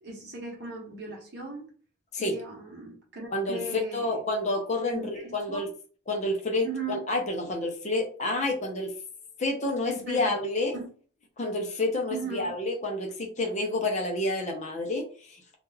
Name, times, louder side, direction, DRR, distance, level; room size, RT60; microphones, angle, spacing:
voice 1, 0.0-1.7 2.2-4.2 4.9-5.7 6.6-7.0 9.9-10.3 10.7-10.9 12.1-12.5, right 3 dB, 50° right, 0.9 m, -38 dB
voice 2, 3.3-5.7 6.1-8.9 9.4-10.8 11.4-15.6, left 2 dB, 35° left, 0.6 m, -29 dB
2.4 x 2.2 x 3.1 m
head